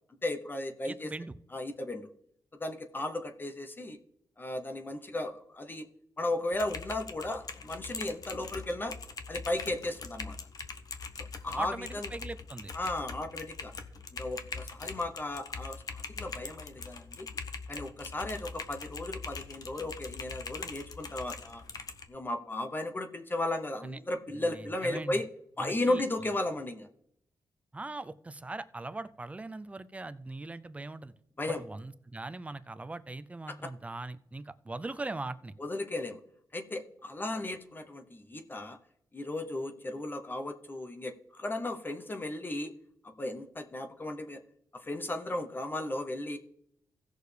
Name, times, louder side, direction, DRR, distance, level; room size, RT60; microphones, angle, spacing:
voice 1, 0.2-1.1 1.5-2.1 2.5-4.0 4.4-5.9 6.2-9.0 9.3-10.4 11.4-12.1 12.7-13.7 14.1-17.3 17.7-21.6 22.1-25.3 25.6-26.9 31.4-31.6 33.5-33.7 35.6-36.2 36.5-38.8 39.1-42.7 43.0-44.4 44.7-46.4, left 2 dB, 25° left, 6 dB, 0.8 m, -35 dB
voice 2, 0.8-1.3 11.6-12.7 23.8-24.0 24.3-25.2 25.6-26.0 27.7-31.1 31.5-35.5, right 2 dB, 15° right, 13 dB, 0.5 m, -40 dB
Typing, 6.5-22.1, left 4 dB, 50° left, 0.9 m, -42 dB
16.5 x 6.5 x 3.4 m, 0.73 s
cardioid pair, 105°, 8 cm